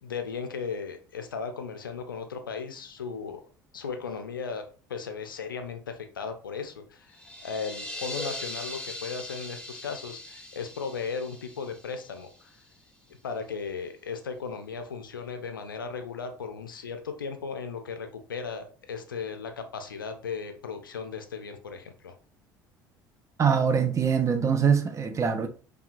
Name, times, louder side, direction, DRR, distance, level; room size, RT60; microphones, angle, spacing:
voice 1, 0.0-3.4 3.7-4.6 4.9-12.5 13.2-22.1, left 5 dB, 80° left, 0.4 m, -36 dB
sound 1, 7.1-12.7, left 1 dB, 10° left, 1.0 m, -40 dB
voice 2, 23.4-25.5, right 7 dB, 30° right, 0.4 m, -23 dB
2.8 x 2.2 x 2.4 m
figure-of-eight pair, 60°, 11 cm